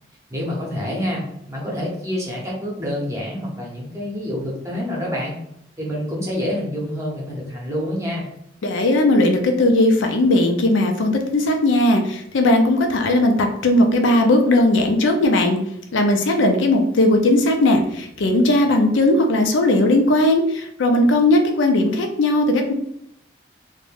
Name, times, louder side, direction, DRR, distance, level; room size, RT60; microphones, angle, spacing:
voice 1, 0.3-5.4 5.8-8.3, equal, 15° right, -3 dB, 0.7 m, -27 dB
voice 2, 8.6-15.6 15.9-22.7, left 1 dB, 75° left, 3 dB, 0.4 m, -17 dB
2.4 x 2.2 x 3.3 m, 0.73 s
head